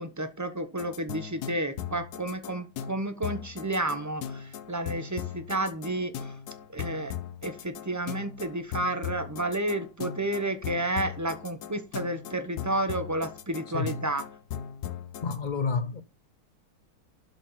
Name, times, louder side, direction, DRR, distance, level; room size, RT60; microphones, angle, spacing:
voice 1, 0.0-6.3 6.7-7.1 7.4-14.2, right 1 dB, 15° right, 0.7 m, -31 dB
sound 1, 0.8-15.4, left 9 dB, 70° left, 1.3 m, -38 dB
voice 2, 15.2-16.0, left 5 dB, 85° left, 0.4 m, -29 dB
12.0 x 4.3 x 5.6 m
omnidirectional pair, 1.9 m